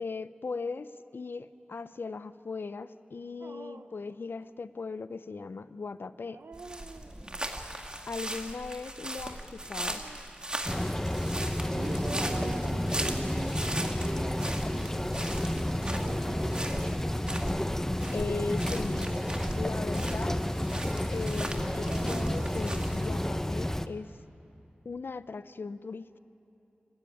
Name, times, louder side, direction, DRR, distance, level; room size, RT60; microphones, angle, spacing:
voice 1, 0.0-6.4 8.1-10.0 18.1-20.4 21.1-24.1 24.8-26.2, left 4 dB, 75° left, 14 dB, 0.6 m, -38 dB
Dog, 3.4-4.0 6.1-7.5 9.6-10.4 11.9-13.4 14.3-17.5 18.7-20.1 21.5-22.8, right 4 dB, 85° right, 0.9 m, -48 dB
sound 1, 6.5-23.2, right 1 dB, 25° right, 2.1 m, -39 dB
sound 2, 10.7-23.9, left 1 dB, 10° left, 0.8 m, -31 dB
voice 2, 11.7-15.2 15.6-17.1, right 2 dB, 70° right, 1 dB, 2.9 m, -40 dB
26.5 x 16.0 x 10.0 m, 2.8 s
wide cardioid pair, 50°, 4 cm